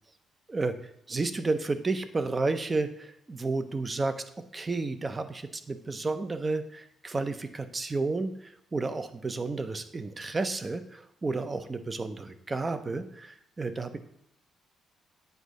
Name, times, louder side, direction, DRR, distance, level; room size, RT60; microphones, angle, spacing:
voice 1, 0.5-4.2 4.5-14.0, right 3 dB, 25° right, 10 dB, 0.6 m, -32 dB
8.1 x 2.7 x 5.1 m, 0.73 s
cardioid pair, 90°, 0 cm